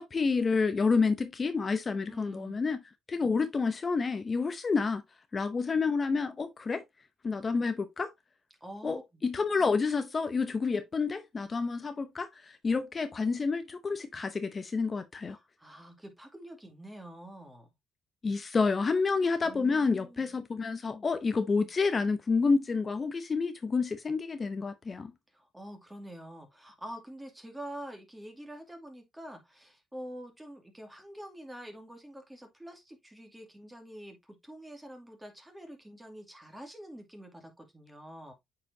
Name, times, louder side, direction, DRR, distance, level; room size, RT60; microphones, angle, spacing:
voice 1, 0.0-2.8 3.1-5.0 5.3-6.8 7.2-8.1 8.8-15.4 18.2-25.1, left 4 dB, 35° left, 0.7 m, -29 dB
voice 2, 2.1-2.6 8.6-9.2 15.2-17.7 19.4-20.3 25.3-38.3, right 1 dB, 10° right, 2.4 m, -46 dB
8.3 x 4.9 x 2.7 m
cardioid pair, 90°, 0 cm